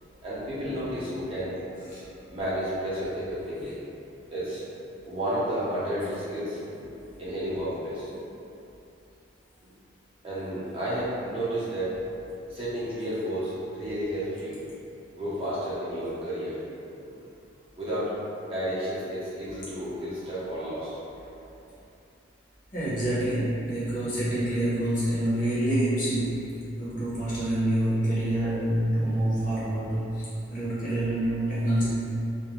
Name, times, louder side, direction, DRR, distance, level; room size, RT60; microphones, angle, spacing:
voice 1, 0.2-1.5 2.3-3.7 4.3-4.6 5.1-8.4 9.6-9.7 10.2-12.0 12.5-14.6 15.1-16.9 17.8-18.1 18.5-20.9, equal, 25° right, -11 dB, 0.5 m, -32 dB
voice 2, 22.7-26.5 26.8-31.9, right 1 dB, 40° left, -10 dB, 0.8 m, -27 dB
2.4 x 2.1 x 2.9 m, 2.7 s
head